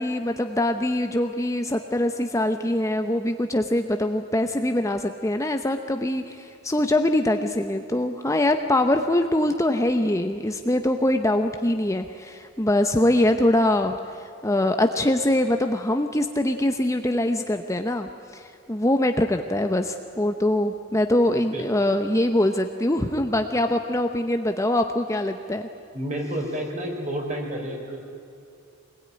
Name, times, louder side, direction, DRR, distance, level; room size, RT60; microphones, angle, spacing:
voice 1, 0.0-14.0 14.4-25.7, left 1 dB, 15° left, 6 dB, 0.9 m, -23 dB
voice 2, 25.9-28.0, right 1 dB, 35° right, 1 dB, 4.8 m, -30 dB
25.0 x 21.0 x 9.8 m, 2.5 s
head